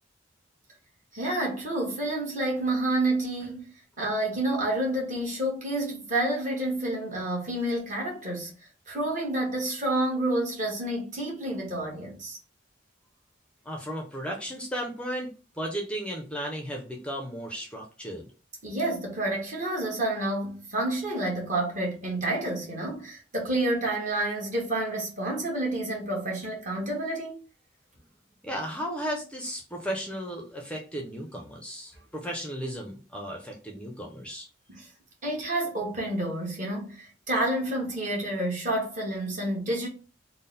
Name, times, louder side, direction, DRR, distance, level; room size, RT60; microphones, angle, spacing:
voice 1, 1.1-3.6 4.0-8.5 8.9-12.4 18.6-27.3 34.7-34.9 35.2-39.9, right 1 dB, 45° right, 1.3 m, -29 dB
voice 2, 13.7-18.3 28.4-34.5, equal, 5° left, 0.5 m, -35 dB
3.7 x 2.1 x 3.9 m
head